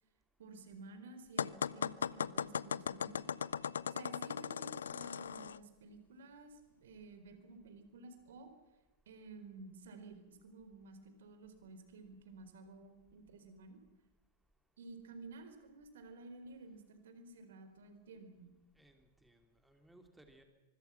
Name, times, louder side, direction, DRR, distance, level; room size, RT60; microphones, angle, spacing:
voice 1, 0.4-3.3 3.9-8.5 9.1-13.8 14.8-18.5, right 3 dB, 65° right, 8 dB, 4.5 m, -53 dB
sound 1, 1.4-5.6, left 7 dB, 75° left, 0.7 m, -38 dB
voice 2, 18.8-20.4, right 1 dB, 5° right, 5 dB, 3.0 m, -63 dB
25.0 x 24.5 x 6.0 m, 1.1 s
figure-of-eight pair, 100°, 0 cm